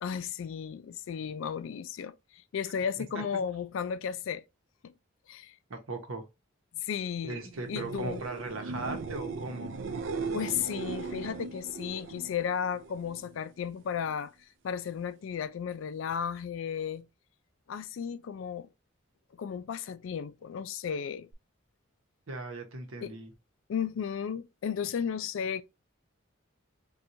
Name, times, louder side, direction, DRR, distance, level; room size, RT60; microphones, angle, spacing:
voice 1, 0.0-4.4 5.3-5.5 6.7-7.4 7.7-8.2 10.3-14.3 14.6-17.1 17.7-18.7 19.4-21.3 23.0-23.1 23.7-25.6, left 7 dB, 65° left, 0.3 m, -34 dB
voice 2, 5.7-6.2 7.2-9.8 22.3-23.3, right 3 dB, 80° right, 0.9 m, -38 dB
sound 1, 7.6-13.3 13.7-14.3 21.3-21.4, right 4 dB, 60° right, 0.4 m, -38 dB
4.3 x 2.3 x 2.6 m
head